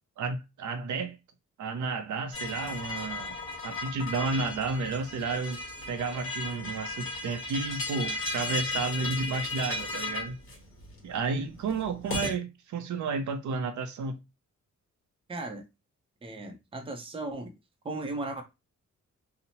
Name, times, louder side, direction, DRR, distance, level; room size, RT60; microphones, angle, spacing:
voice 1, 0.2-1.2 1.6-3.4 3.6-5.6 5.9-10.4 11.0-14.2, right 4 dB, 75° right, 0.5 m, -32 dB
sound 1, 2.3-12.3, left 3 dB, 45° left, 1.2 m, -35 dB
voice 2, 15.3-15.6 16.2-17.5 17.8-18.4, right 2 dB, 20° right, 0.5 m, -36 dB
2.8 x 2.0 x 2.8 m
wide cardioid pair, 120°, 30 cm